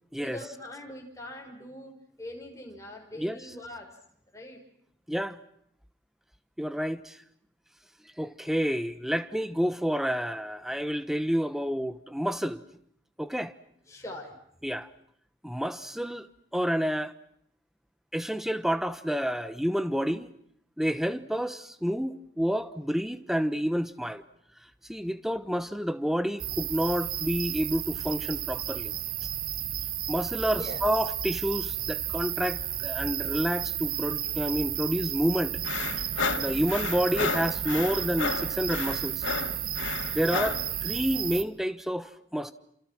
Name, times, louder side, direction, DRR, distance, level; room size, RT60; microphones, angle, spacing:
voice 1, 0.2-1.9 2.2-4.0 4.3-4.6 13.9-14.3 30.5-30.8, left 1 dB, 15° left, 5.9 m, -42 dB
voice 2, 5.1-5.4 6.6-7.2 8.2-12.6 13.2-13.5 14.6-14.9 15.4-16.3 16.5-17.1 18.1-20.3 20.8-24.2 24.9-28.9 30.1-35.6 36.3-39.3 40.1-42.5, equal, ahead, 1.1 m, -29 dB
sound 1, 26.4-41.4, right 10 dB, 45° right, 1.2 m, -33 dB
sound 2, 35.6-40.7, left 4 dB, 90° left, 2.7 m, -32 dB
30.0 x 28.0 x 6.2 m
head